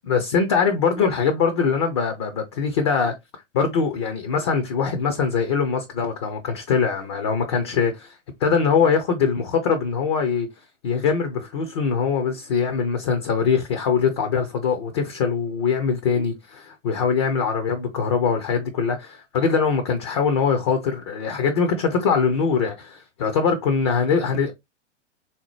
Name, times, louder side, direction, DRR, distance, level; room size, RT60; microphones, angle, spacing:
voice 1, 0.1-3.1 3.5-10.5 10.8-24.5, left 6 dB, 25° left, 0.3 m, -22 dB
3.6 x 2.8 x 2.9 m
figure-of-eight pair, 105°, 36 cm